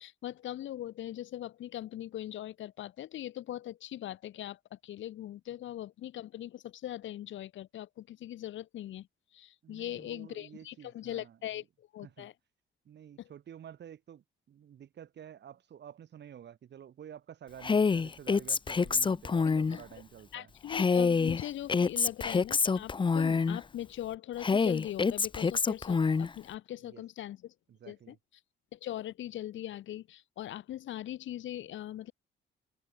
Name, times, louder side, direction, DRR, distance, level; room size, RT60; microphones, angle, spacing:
voice 1, 0.0-9.1 9.3-12.3 13.2-13.3 19.4-19.8 20.3-27.5 27.9-28.1 28.7-32.1, left 13 dB, 75° left, 1.4 m, -41 dB
voice 2, 9.6-11.6 12.0-12.3 12.9-20.5 26.8-27.0 27.7-28.2, right 9 dB, 60° right, 3.8 m, -50 dB
Female speech woman speaking, 17.6-19.8 20.7-23.6 24.4-26.3, left 5 dB, 25° left, 0.7 m, -27 dB
cardioid pair, 90°, 20 cm